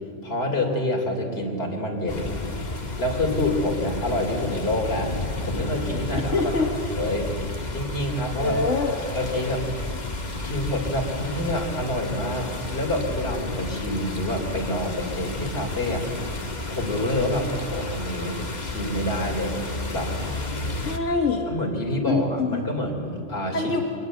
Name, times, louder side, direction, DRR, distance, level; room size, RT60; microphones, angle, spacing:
voice 1, 0.2-2.3 3.0-5.1 5.4-6.3 6.6-6.7 7.0-7.3 7.7-8.8 9.1-9.7 10.4-16.1 16.7-19.6 19.9-20.1 21.5-23.7, left 1 dB, 55° left, 1 dB, 3.6 m, -27 dB
sound 1, 2.1-21.0, left 2 dB, 35° left, 1.7 m, -32 dB
voice 2, 6.3-6.7 8.4-9.0 20.8-21.5 22.1-22.6 23.5-23.8, left 3 dB, 90° left, 1 dB, 2.2 m, -24 dB
24.0 x 19.5 x 8.0 m, 2.4 s
omnidirectional pair, 1.3 m